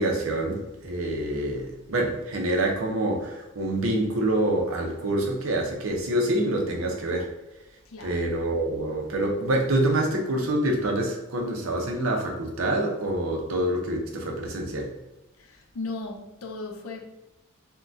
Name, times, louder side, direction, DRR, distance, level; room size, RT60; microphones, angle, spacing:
voice 1, 0.0-7.3 8.0-14.9, right 1 dB, 75° right, 0.7 m, -26 dB
voice 2, 7.9-8.2 15.4-17.1, left 3 dB, 80° left, 0.5 m, -36 dB
3.6 x 2.2 x 2.6 m
head